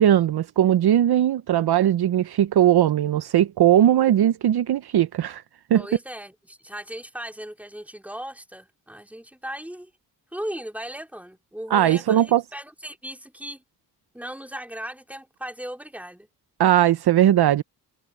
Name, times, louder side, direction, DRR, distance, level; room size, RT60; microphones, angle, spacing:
voice 1, 0.0-5.4 5.7-5.8 11.7-12.4 16.6-17.6, right 11 dB, 65° right, 0.8 m, -19 dB
voice 2, 5.7-9.9 10.3-13.6 14.1-16.3, equal, 5° right, 3.8 m, -37 dB
cardioid pair, 75°, 42 cm